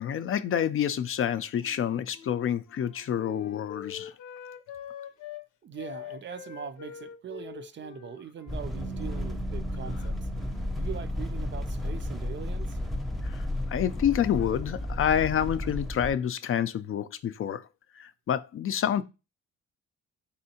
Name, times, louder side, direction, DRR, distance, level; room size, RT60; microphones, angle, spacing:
voice 1, 0.0-4.1 13.2-17.6 18.0-19.0, left 9 dB, 45° left, 0.4 m, -28 dB
Wind instrument woodwind instrument, 1.6-5.5 5.8-9.3 9.6-10.1, left 10 dB, 90° left, 0.7 m, -45 dB
voice 2, 5.6-10.3 10.7-12.9, right 8 dB, 40° right, 0.4 m, -41 dB
sound 1, 8.5-16.1, left 1 dB, ahead, 0.7 m, -33 dB
Bass guitar, 8.7-15.0, right 8 dB, 85° right, 1.1 m, -46 dB
4.2 x 3.6 x 2.8 m
cardioid pair, 90°, 30 cm